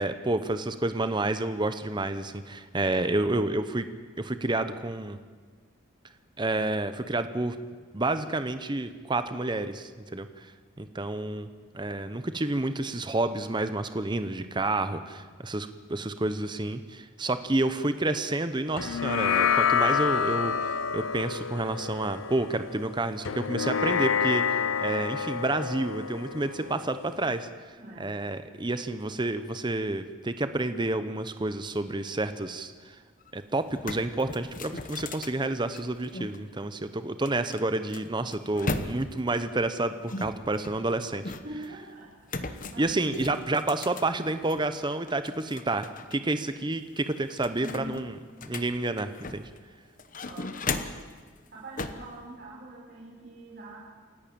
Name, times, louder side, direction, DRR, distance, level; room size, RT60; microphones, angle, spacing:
voice 1, 0.0-3.9 4.2-5.2 6.4-7.6 7.9-10.5 10.8-11.5 11.7-33.0 33.3-41.3 42.8-48.1 48.4-49.5, right 2 dB, 20° right, 10 dB, 0.8 m, -29 dB
sound 1, 18.8-27.5, left 7 dB, 75° left, 0.6 m, -28 dB
voice 2, 27.7-28.2 41.4-43.0 47.5-48.1 50.2-51.1 51.5-53.8, right 1 dB, 50° right, -7 dB, 5.1 m, -44 dB
sound 2, 33.2-33.3 33.6-36.4 37.3-39.3 40.1-41.7 42.3-44.7 45.1-46.2 46.5-46.6 47.0-49.6 50.0-51.1 51.8-52.1, left 3 dB, 40° left, 1.0 m, -37 dB
27.5 x 11.5 x 8.7 m, 1.5 s
head